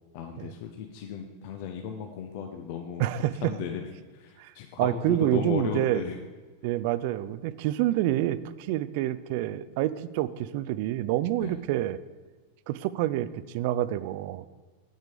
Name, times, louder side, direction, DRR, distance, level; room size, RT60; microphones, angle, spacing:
voice 1, 0.1-3.0 3.4-3.8 4.1-6.2 11.4-11.6, left 8 dB, 45° left, 4 dB, 0.8 m, -35 dB
voice 2, 3.0-3.5 4.4-4.5 4.8-6.0 6.6-12.0 12.7-14.5, right 14 dB, 45° right, 16 dB, 0.4 m, -27 dB
9.1 x 8.9 x 5.0 m, 1.4 s
figure-of-eight pair, 90°, 0 cm